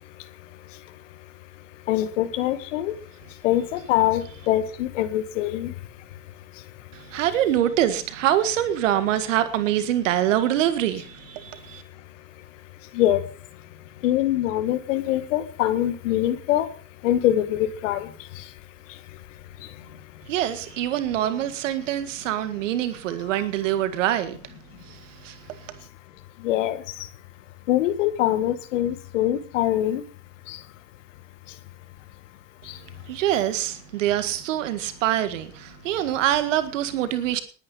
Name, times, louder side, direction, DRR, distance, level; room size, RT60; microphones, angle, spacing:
voice 1, 1.9-2.9 3.4-5.7 12.9-13.2 14.0-16.7 17.0-18.1 26.4-26.8 27.7-30.0 30.5-30.6, left 13 dB, 80° left, 2.0 m, -23 dB
voice 2, 6.9-11.8 20.3-25.9 33.1-37.4, right 12 dB, 80° right, 1.8 m, -25 dB
19.5 x 9.5 x 5.5 m
hypercardioid pair, 55°, 37 cm